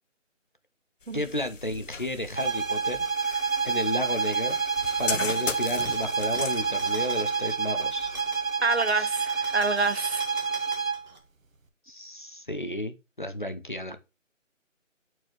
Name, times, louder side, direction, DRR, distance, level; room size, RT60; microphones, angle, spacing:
sound 1, 1.0-8.9, left 5 dB, 70° left, 0.8 m, -38 dB
voice 1, 1.1-3.0 3.6-4.6 5.0-8.1 8.9-9.1 11.9-14.0, left 1 dB, 40° left, 0.6 m, -33 dB
sound 2, 2.4-11.1, right 5 dB, 85° right, 1.2 m, -28 dB
sound 3, 4.2-11.2, right 1 dB, 35° right, 1.3 m, -44 dB
voice 2, 8.6-10.3, right 3 dB, 55° right, 0.5 m, -27 dB
8.2 x 4.5 x 3.0 m
figure-of-eight pair, 175°, 39 cm